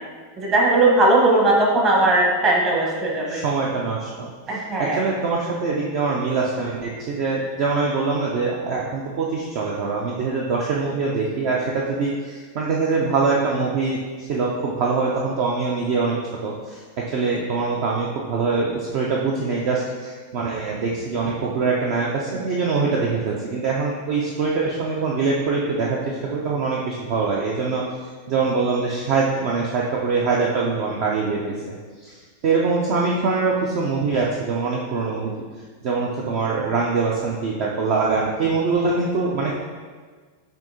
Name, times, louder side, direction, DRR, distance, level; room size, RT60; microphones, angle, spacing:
voice 1, 0.4-3.4 4.5-5.0, right 2 dB, 30° right, -2 dB, 1.1 m, -18 dB
voice 2, 3.3-4.3 4.8-14.0 14.3-16.2 16.4-27.8 28.3-31.5 32.0-32.1 32.4-35.3 35.8-39.6, right 4 dB, 45° right, -2 dB, 0.5 m, -23 dB
6.9 x 2.7 x 2.7 m, 1.5 s
figure-of-eight pair, 90°, 0 cm